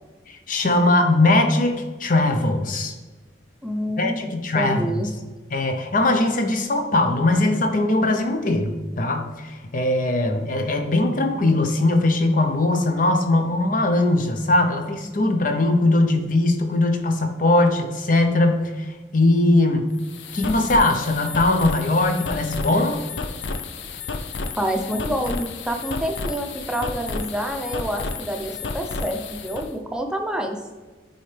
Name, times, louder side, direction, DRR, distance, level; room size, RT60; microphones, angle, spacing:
voice 1, 0.3-2.9 4.0-5.0 5.5-8.7 9.0-19.9 20.3-23.0, left 2 dB, 50° left, 5 dB, 0.8 m, -20 dB
voice 2, 3.6-5.1 24.6-30.6, equal, 5° right, 3 dB, 0.7 m, -27 dB
sound 1, 19.9-29.7, left 3 dB, 80° left, 0.6 m, -32 dB
9.3 x 4.3 x 3.4 m, 1.3 s
head